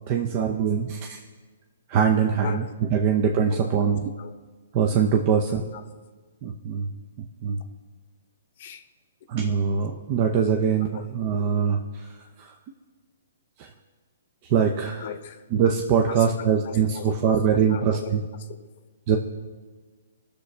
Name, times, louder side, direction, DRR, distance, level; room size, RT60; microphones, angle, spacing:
voice 1, 0.1-1.2 1.9-2.6 2.9-4.0 4.7-5.6 6.4-6.9 7.4-7.6 9.3-11.8 14.5-15.1 15.5-18.2 19.1-19.2, right 7 dB, 35° right, 0.7 m, -22 dB
voice 2, 2.4-2.7 3.0-3.2 3.5-4.4 5.3-5.4 5.7-5.8 8.6-8.9 10.8-11.1 15.0-15.4 16.1-18.2 18.5-18.7, left 9 dB, 50° left, 0.8 m, -39 dB
18.0 x 6.7 x 3.3 m
hypercardioid pair, 140°, 0 cm